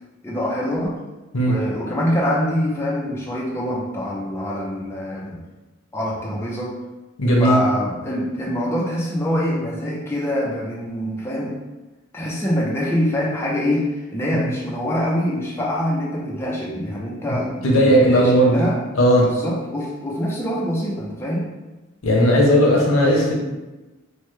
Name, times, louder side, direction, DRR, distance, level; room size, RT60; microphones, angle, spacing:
voice 1, 0.2-1.0 1.4-5.4 5.9-6.7 7.4-11.6 12.1-18.8 19.1-21.5, equal, 10° left, -5 dB, 0.4 m, -24 dB
voice 2, 7.2-7.6 17.6-18.6 19.0-19.3 22.0-23.3, equal, 80° left, -2 dB, 0.7 m, -16 dB
3.1 x 2.1 x 3.1 m, 1.1 s
head